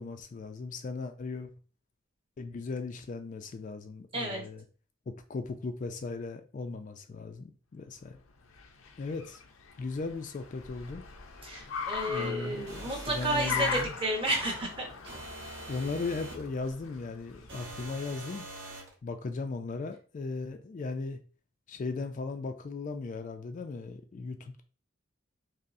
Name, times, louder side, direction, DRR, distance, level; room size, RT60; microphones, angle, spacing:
voice 1, 0.0-1.5 2.4-4.6 5.1-8.2 9.0-9.4 9.8-11.0 12.1-13.9 15.7-18.5 19.0-21.2 21.7-24.6, left 3 dB, 40° left, 0.3 m, -37 dB
voice 2, 4.1-4.5 11.4-14.9, right 1 dB, 25° right, 0.9 m, -31 dB
Car, 8.2-18.4, left 5 dB, 90° left, 0.5 m, -40 dB
sound 1, 12.7-14.0 15.1-16.5 17.5-18.9, right 1 dB, 60° right, 1.2 m, -43 dB
5.2 x 2.0 x 2.6 m
head